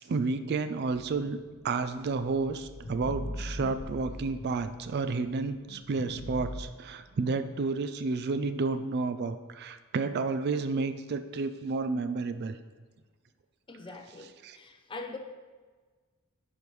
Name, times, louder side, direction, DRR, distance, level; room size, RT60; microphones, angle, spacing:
voice 1, 0.1-1.4 1.6-12.6 14.4-14.6, right 4 dB, 50° right, 11 dB, 0.3 m, -31 dB
sound 1, 1.0-5.2 5.7-6.6, left 1 dB, 60° left, 0.8 m, -41 dB
voice 2, 13.7-15.2, left 3 dB, 25° left, 5 dB, 0.6 m, -43 dB
9.9 x 5.3 x 3.2 m, 1.4 s
head